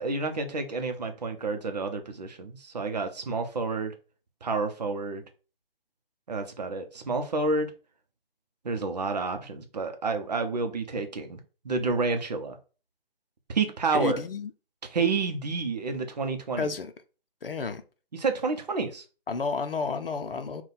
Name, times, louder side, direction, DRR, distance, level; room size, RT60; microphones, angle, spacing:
voice 1, 0.0-3.9 4.4-5.2 6.3-7.7 8.6-11.4 11.6-12.6 13.5-14.2 14.9-16.7 18.1-19.0, right 4 dB, 45° right, 0.6 m, -29 dB
voice 2, 13.9-14.5 16.6-16.9 17.4-17.8 19.3-20.6, left 4 dB, 70° left, 0.6 m, -31 dB
3.7 x 2.3 x 4.0 m
figure-of-eight pair, 150°, 30 cm